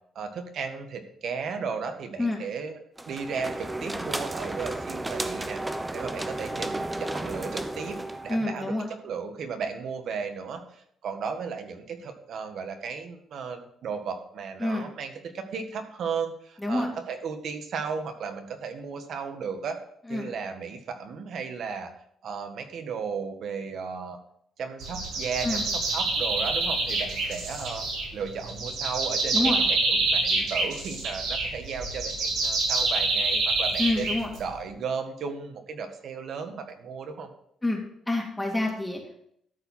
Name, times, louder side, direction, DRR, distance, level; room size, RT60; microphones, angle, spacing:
voice 1, 0.1-2.8 3.1-8.7 9.0-19.8 20.1-21.9 22.2-24.2 24.6-27.8 28.1-34.1 34.4-37.3, right 5 dB, 65° right, 6 dB, 1.6 m, -35 dB
sound 1, 3.0-8.5, right 1 dB, 15° right, 0.8 m, -33 dB
voice 2, 8.3-8.9 14.6-14.9 16.6-16.9 20.1-20.3 25.4-25.6 29.3-29.6 33.8-34.3 37.6-37.8 38.1-39.2, left 2 dB, 10° left, -1 dB, 2.2 m, -27 dB
sound 2, 24.8-34.6, right 3 dB, 80° right, 4.9 m, -27 dB
13.0 x 4.8 x 5.6 m, 0.70 s
cardioid pair, 90°, 0 cm